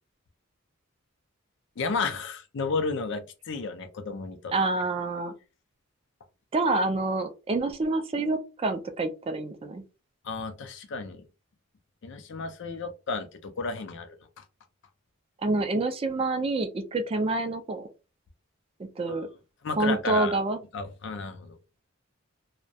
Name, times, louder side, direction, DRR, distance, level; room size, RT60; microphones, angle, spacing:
voice 1, 1.8-4.5 10.2-11.3 12.0-14.4 19.1-19.2 19.6-20.4 20.7-21.6, left 4 dB, 60° left, 0.4 m, -33 dB
voice 2, 4.5-5.3 6.5-9.8 15.4-17.9 19.0-19.3 19.8-20.6, right 2 dB, 25° right, 0.3 m, -27 dB
2.3 x 2.1 x 2.7 m
head